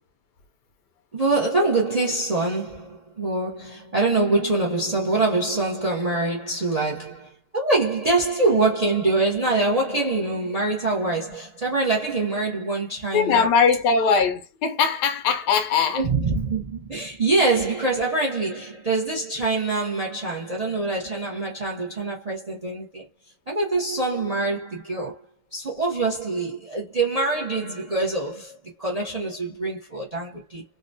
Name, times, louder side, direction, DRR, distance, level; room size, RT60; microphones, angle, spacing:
voice 1, 1.1-13.5 15.9-23.1 23.5-25.2 25.5-30.6, right 3 dB, 45° right, 0.5 m, -24 dB
voice 2, 13.1-16.0, left 6 dB, 80° left, 1.3 m, -20 dB
3.8 x 2.2 x 2.5 m
omnidirectional pair, 1.8 m